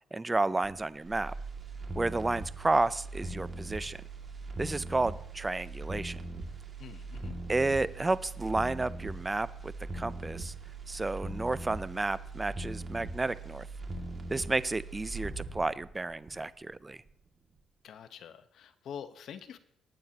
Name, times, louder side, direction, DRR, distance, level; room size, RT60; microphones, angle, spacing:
voice 1, 0.1-1.3 1.9-4.0 4.6-6.2 7.5-10.5 10.9-13.7 14.3-17.0, right 2 dB, 20° right, 17 dB, 0.5 m, -31 dB
sound 1, 0.6-16.7 17.1-17.2, right 2 dB, 35° right, 2.2 m, -41 dB
voice 2, 6.8-7.4 17.8-19.6, left 8 dB, 70° left, 10 dB, 1.0 m, -45 dB
19.5 x 9.1 x 2.9 m, 0.73 s
cardioid pair, 90°, 0 cm